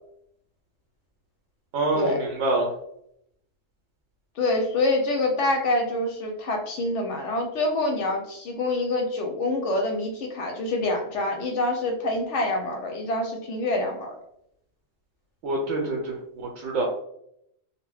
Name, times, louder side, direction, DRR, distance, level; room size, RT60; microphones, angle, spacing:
voice 1, 1.7-2.7 15.4-16.8, right 2 dB, 70° right, -1 dB, 0.8 m, -26 dB
voice 2, 4.4-14.1, left 2 dB, 70° left, 3 dB, 0.8 m, -26 dB
2.6 x 2.1 x 3.2 m, 0.75 s
omnidirectional pair, 1.4 m